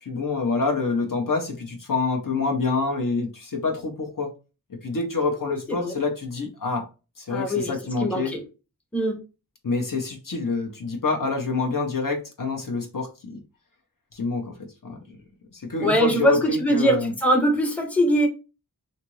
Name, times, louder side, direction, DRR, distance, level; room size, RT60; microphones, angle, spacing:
voice 1, 0.0-4.3 4.7-6.9 7.2-8.4 9.6-13.4 14.1-15.2 15.5-17.1, left 4 dB, 60° left, 0.8 m, -27 dB
voice 2, 5.4-6.0 7.3-7.7 8.0-8.4 8.9-9.2 15.8-18.3, equal, 5° left, 0.7 m, -22 dB
2.7 x 2.5 x 3.0 m
wide cardioid pair, 50°, 37 cm